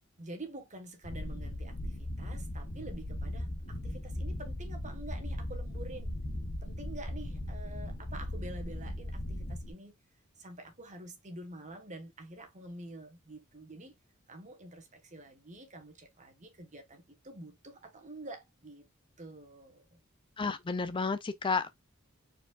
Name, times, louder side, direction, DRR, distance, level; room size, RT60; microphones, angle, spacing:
voice 1, 0.2-6.2 6.6-9.9 10.4-13.9 14.3-18.9 19.2-20.0, right 1 dB, 35° right, 1.5 m, -47 dB
sound 1, 1.0-9.7, left 1 dB, 45° left, 0.8 m, -38 dB
voice 2, 20.4-21.7, left 4 dB, 25° left, 0.4 m, -31 dB
4.7 x 4.5 x 2.5 m
head